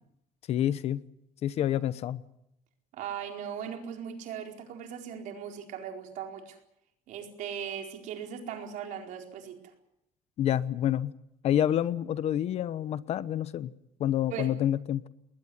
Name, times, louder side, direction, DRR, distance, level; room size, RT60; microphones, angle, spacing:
voice 1, 0.5-1.0 1.4-2.2 10.4-11.1 11.4-13.7 14.0-15.0, left 11 dB, 45° left, 1.0 m, -28 dB
voice 2, 2.9-6.6 7.1-9.6 14.3-14.5, right 8 dB, 60° right, 4.5 m, -38 dB
20.5 x 20.0 x 9.6 m
cardioid pair, 175°, 15 cm